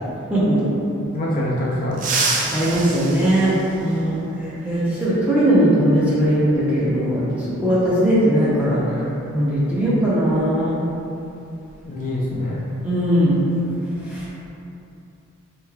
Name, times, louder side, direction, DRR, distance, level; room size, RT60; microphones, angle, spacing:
voice 1, 1.1-2.0 11.8-12.6, left 1 dB, 40° left, -6 dB, 0.4 m, -24 dB
sound 1, 1.9-4.3 6.0-6.1 7.3-7.4 9.0-9.2 9.6-9.8 10.2-12.4 12.7-12.9 13.4-13.8, right 3 dB, 40° right, 0.3 m, -28 dB
voice 2, 2.5-9.0 9.3-10.8 12.8-13.4 14.1-14.2, right 1 dB, 5° right, -10 dB, 0.7 m, -19 dB
4.1 x 3.1 x 2.4 m, 2.7 s
head